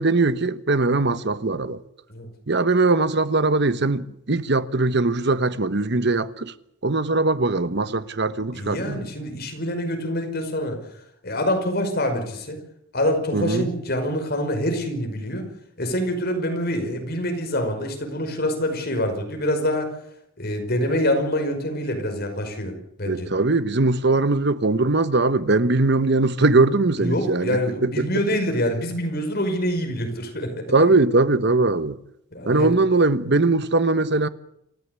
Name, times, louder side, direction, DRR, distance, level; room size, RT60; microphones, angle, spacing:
voice 1, 0.0-1.8 2.5-6.5 6.8-9.1 13.3-13.7 23.1-28.1 30.7-32.0 32.5-34.3, right 3 dB, 55° right, 1.1 m, -21 dB
voice 2, 8.5-10.8 11.2-12.6 12.9-15.5 15.8-19.9 20.4-23.3 27.0-30.7 32.3-32.7, equal, 50° left, 5.3 m, -25 dB
27.5 x 14.5 x 8.3 m
head